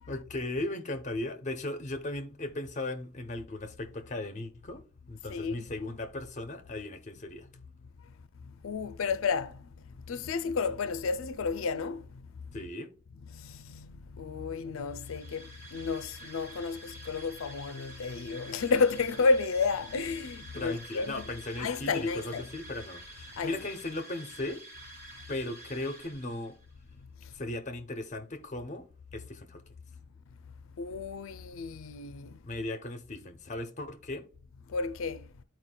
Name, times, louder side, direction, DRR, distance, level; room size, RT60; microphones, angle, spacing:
voice 1, 0.1-7.5 12.5-12.9 20.5-24.6 25.3-26.6 27.3-28.8 29.1-29.6 32.4-34.2, left 2 dB, 35° left, 0.8 m, -37 dB
voice 2, 8.6-9.6 10.1-12.1 13.3-13.9 14.2-21.2 21.6-22.4 23.4-23.6 30.8-32.3 34.7-35.2, left 4 dB, 75° left, 0.4 m, -31 dB
sound 1, 14.9-26.7, right 1 dB, 15° right, 3.5 m, -49 dB
13.0 x 4.6 x 2.2 m
head